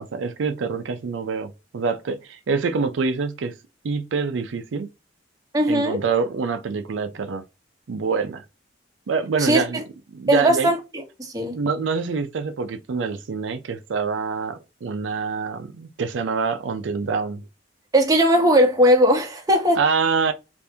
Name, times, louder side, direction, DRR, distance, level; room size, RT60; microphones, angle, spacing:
voice 1, 0.0-3.5 3.8-4.9 5.7-7.4 7.9-8.4 9.1-9.8 10.1-10.7 11.5-17.4 19.8-20.3, right 5 dB, 75° right, 0.4 m, -25 dB
voice 2, 5.5-6.0 9.4-9.8 10.3-10.8 11.2-11.5 17.9-19.8, equal, 20° right, 0.8 m, -18 dB
3.4 x 2.5 x 2.7 m
head